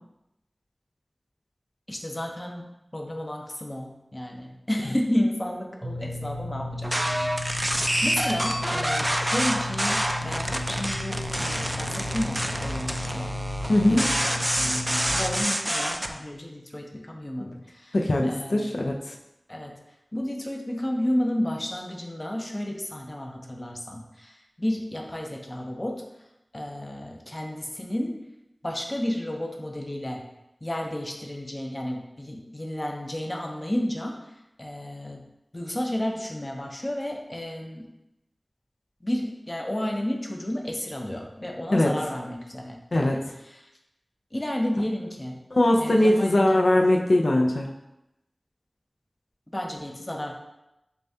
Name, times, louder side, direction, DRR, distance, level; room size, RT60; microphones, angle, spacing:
voice 1, 1.9-2.7 2.9-7.5 8.0-13.4 13.7-18.0 18.2-18.8 19.5-19.8 20.1-26.0 26.5-28.2 28.6-30.2 30.6-35.2 35.5-37.9 39.0-43.7 44.3-45.4 45.8-46.7 49.5-50.3, left 1 dB, 30° left, 2 dB, 0.5 m, -32 dB
sound 1, 5.8-15.4, left 1 dB, 60° right, 0.6 m, -34 dB
sound 2, 6.8-16.1, equal, 15° right, 0.3 m, -27 dB
voice 2, 13.7-14.0 17.9-19.2 41.7-41.9 42.9-43.2 45.5-47.7, left 1 dB, 80° left, 0 dB, 0.4 m, -21 dB
6.7 x 2.2 x 2.7 m, 0.90 s
wide cardioid pair, 60°, 0 cm